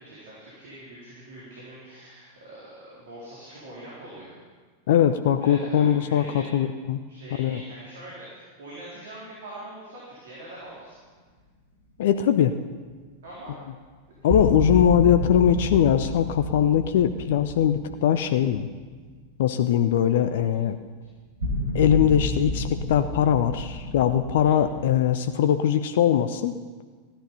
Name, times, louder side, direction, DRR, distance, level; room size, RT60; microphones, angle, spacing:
voice 1, 0.0-4.4 5.4-6.6 7.1-11.0 13.2-13.6 24.4-24.5, right 1 dB, 60° right, -7 dB, 4.1 m, -43 dB
voice 2, 4.9-7.0 7.4-7.6 12.0-12.5 14.2-18.7 19.4-20.8 21.7-26.5, left 9 dB, 55° left, 9 dB, 0.6 m, -21 dB
sound 1, 14.3-19.4 19.7-19.8 21.4-24.9, left 1 dB, 80° right, 4.7 m, -30 dB
15.0 x 11.5 x 5.5 m, 1.5 s
figure-of-eight pair, 90°, 0 cm